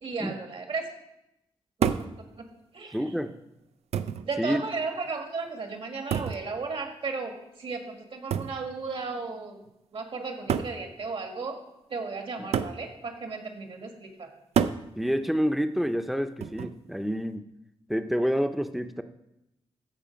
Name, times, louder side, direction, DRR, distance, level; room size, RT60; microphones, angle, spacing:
voice 1, 0.0-0.9 2.0-2.1 2.4-2.5 2.7-3.0 4.2-7.3 7.6-9.6 9.9-11.6 11.9-14.3, right 4 dB, 60° right, 4 dB, 1.8 m, -34 dB
sound 1, 1.8-2.2 3.2-3.3 3.9-4.3 6.1-6.5 8.3-8.6 9.7-9.8 10.5-10.8 12.5-12.8 14.6-14.9 16.4-16.8, right 8 dB, 80° right, 0.5 m, -28 dB
voice 2, 2.9-3.3 4.4-4.6 12.4-12.5 15.0-17.5 17.9-19.0, equal, ahead, 9 dB, 0.6 m, -28 dB
14.5 x 5.0 x 5.2 m, 0.87 s
cardioid pair, 95°, 11 cm